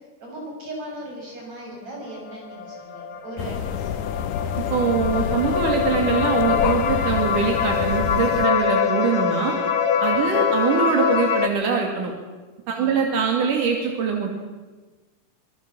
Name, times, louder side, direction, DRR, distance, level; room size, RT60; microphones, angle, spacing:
voice 1, 0.2-3.9 4.2-4.4 12.8-13.0, right 1 dB, 60° right, -2 dB, 8.1 m, -38 dB
sound 1, 2.2-11.5, left 6 dB, 55° left, 1.1 m, -24 dB
sound 2, 3.4-8.5, left 9 dB, 80° left, 2.4 m, -28 dB
voice 2, 4.7-9.6 10.0-12.1 12.7-14.3, right 6 dB, 85° right, 2 dB, 4.1 m, -23 dB
26.0 x 20.0 x 7.6 m, 1.3 s
omnidirectional pair, 3.6 m